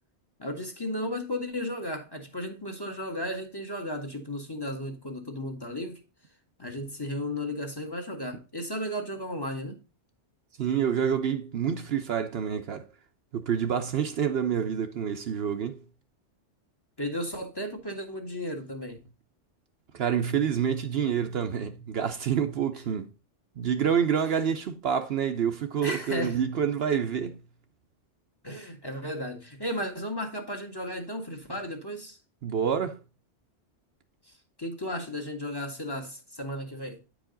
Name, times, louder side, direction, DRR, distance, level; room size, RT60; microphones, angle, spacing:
voice 1, 0.4-6.0 6.6-9.8 17.0-19.0 25.8-26.4 28.4-32.2 34.6-37.0, left 1 dB, 20° left, 1.3 m, -34 dB
voice 2, 10.6-12.9 13.3-15.8 19.9-23.1 23.6-27.4 32.4-33.0, right 8 dB, 65° right, 0.8 m, -27 dB
9.3 x 4.9 x 3.8 m
omnidirectional pair, 1.2 m